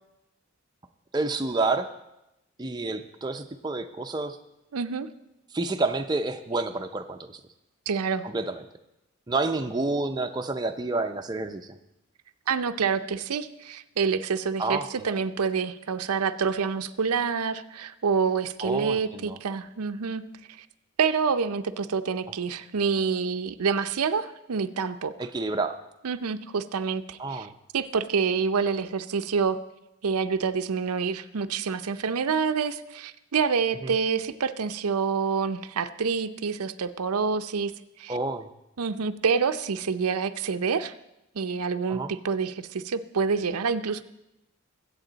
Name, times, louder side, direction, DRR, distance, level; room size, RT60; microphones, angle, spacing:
voice 1, 1.1-1.9 2.6-4.4 5.5-7.4 8.2-8.6 9.3-11.8 14.6-14.9 18.6-19.4 25.2-25.8 27.2-27.5 33.8-33.9 38.1-38.5 41.9-42.1, right 3 dB, 20° right, 5 dB, 0.5 m, -29 dB
voice 2, 4.7-5.1 7.9-8.2 12.5-20.2 21.0-25.1 26.0-27.5 27.7-29.6 30.0-37.7 38.0-38.1 38.8-40.9 41.3-44.0, right 5 dB, 90° right, 10 dB, 0.6 m, -27 dB
21.5 x 8.2 x 4.0 m, 0.90 s
head